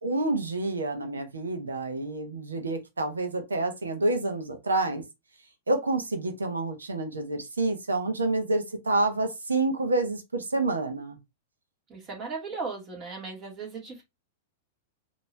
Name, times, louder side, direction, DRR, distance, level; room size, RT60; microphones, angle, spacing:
voice 1, 0.0-5.0 5.7-11.2, right 2 dB, 90° right, 1.0 m, -28 dB
voice 2, 11.9-14.0, right 4 dB, 35° right, 2.2 m, -37 dB
4.3 x 3.0 x 3.3 m
hypercardioid pair, 105°, 0 cm